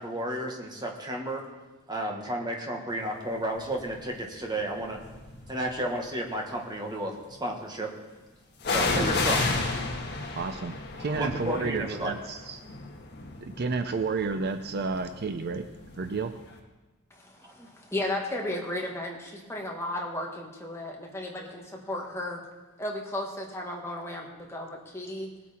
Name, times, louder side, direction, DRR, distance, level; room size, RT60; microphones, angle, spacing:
voice 1, 0.0-1.4 1.9-5.0 5.5-7.1 7.4-7.9 8.7-9.5 11.2-12.1 17.4-17.7, right 1 dB, 20° right, 1 dB, 1.6 m, -32 dB
sound 1, 3.7-4.0 4.8-5.7 8.6-16.3 16.5-16.6, left 3 dB, 50° left, 1.6 m, -32 dB
voice 2, 10.3-12.6 13.4-15.6 16.0-16.3, right 4 dB, 50° right, 9 dB, 0.5 m, -31 dB
voice 3, 17.1-22.4 22.8-25.3, left 1 dB, 10° left, -1 dB, 1.7 m, -34 dB
19.0 x 8.3 x 4.4 m, 1.2 s
head